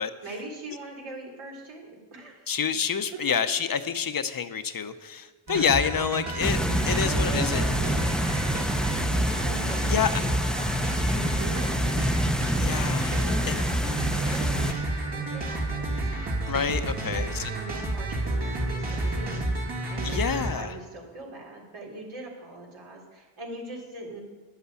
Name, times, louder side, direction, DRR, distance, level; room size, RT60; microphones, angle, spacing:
voice 1, 0.2-2.5 3.1-3.2 6.8-12.0 13.1-13.6 14.1-16.0 16.7-24.2, right 2 dB, 75° right, -1 dB, 3.6 m, -42 dB
voice 2, 2.5-6.6 6.8-7.6 9.9-10.2 12.6-13.2 13.5-13.6 16.5-17.5 20.0-20.8, left 7 dB, 45° left, 10 dB, 0.7 m, -27 dB
sound 1, 5.5-20.5, right 2 dB, 55° right, 2.5 m, -29 dB
sound 2, 6.4-14.7, equal, ahead, 0.5 m, -28 dB
10.5 x 8.1 x 8.3 m, 1.3 s
wide cardioid pair, 105°, 49 cm